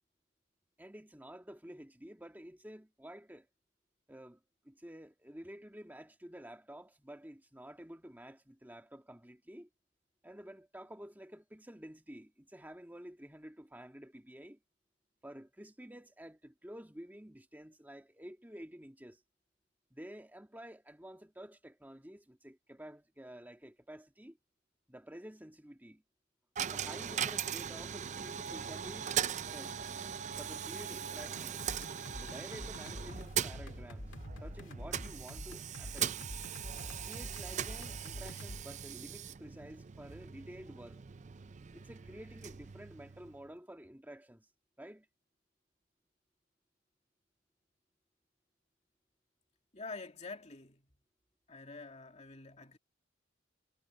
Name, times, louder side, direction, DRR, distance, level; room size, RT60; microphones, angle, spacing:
voice 1, 0.8-3.5 4.1-4.4 4.6-9.7 10.2-14.6 15.2-19.2 19.9-24.4 24.9-26.0 26.6-29.2 29.5-29.9 30.4-31.6 32.2-36.1 37.0-41.0 41.7-44.5 44.8-45.1, equal, 10° right, 1.9 m, -51 dB
Coin (dropping), 26.6-43.5, right 8 dB, 35° right, 0.4 m, -40 dB
sound 1, 31.4-38.6, left 1 dB, 75° left, 2.0 m, -47 dB
voice 2, 49.7-50.9 51.5-52.8, left 3 dB, 35° left, 2.4 m, -47 dB
head